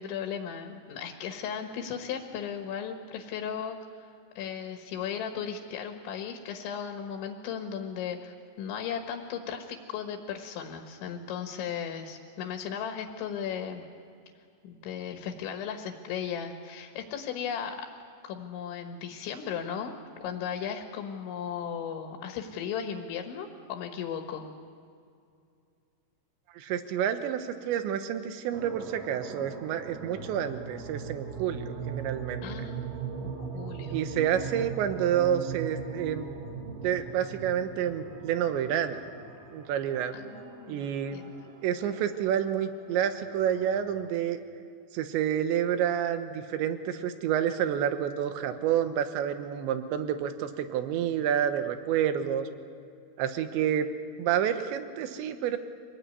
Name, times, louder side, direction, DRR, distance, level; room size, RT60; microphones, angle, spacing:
voice 1, 0.0-13.9 14.6-17.9 18.2-20.0 20.2-24.5 32.4-34.0 40.1-41.3, left 7 dB, 75° left, 4 dB, 3.8 m, -36 dB
voice 2, 26.5-32.5 33.9-36.3 36.8-39.0 39.5-40.1 40.7-41.2 41.6-44.4 44.9-52.5 53.2-53.9 54.2-55.6, right 9 dB, 75° right, 9 dB, 3.3 m, -29 dB
sound 1, 28.5-44.1, right 5 dB, 50° right, 3.2 m, -40 dB
25.5 x 19.0 x 9.6 m, 2.4 s
omnidirectional pair, 5.6 m